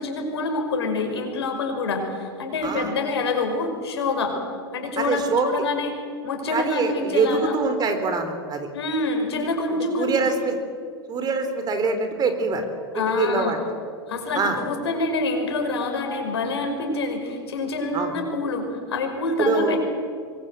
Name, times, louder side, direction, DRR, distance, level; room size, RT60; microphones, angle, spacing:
voice 1, 0.0-4.4 4.7-5.9 6.2-7.6 8.7-10.3 12.9-13.6 14.1-19.8, left 3 dB, 75° left, 4 dB, 5.6 m, -26 dB
voice 2, 2.6-2.9 5.0-5.5 6.5-8.7 10.0-10.5 11.1-12.6 12.9-13.6 14.3-14.6 17.9-18.1 19.4-19.8, right 4 dB, 30° right, 7 dB, 4.2 m, -24 dB
25.0 x 22.5 x 8.0 m, 2.2 s
hypercardioid pair, 95°, 14 cm